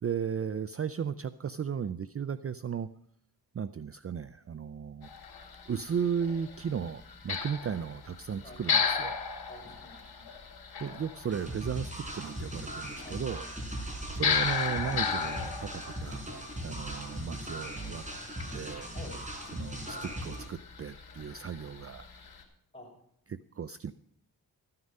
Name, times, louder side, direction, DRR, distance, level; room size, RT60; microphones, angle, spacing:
voice 1, 0.0-2.9 3.5-5.1 5.7-9.2 10.8-13.5 14.1-18.0 18.5-18.9 19.5-22.1 23.3-23.9, right 7 dB, 40° right, 14 dB, 0.5 m, -35 dB
sound 1, 5.0-22.4, left 6 dB, 90° left, 3.1 m, -36 dB
voice 2, 8.4-8.8 9.5-10.3 13.0-13.4 18.9-19.2 22.7-22.9, left 1 dB, 15° left, -2 dB, 6.9 m, -49 dB
sound 2, 11.3-20.5, right 1 dB, 20° right, 4.1 m, -39 dB
14.0 x 9.7 x 5.4 m, 0.72 s
wide cardioid pair, 90°, 38 cm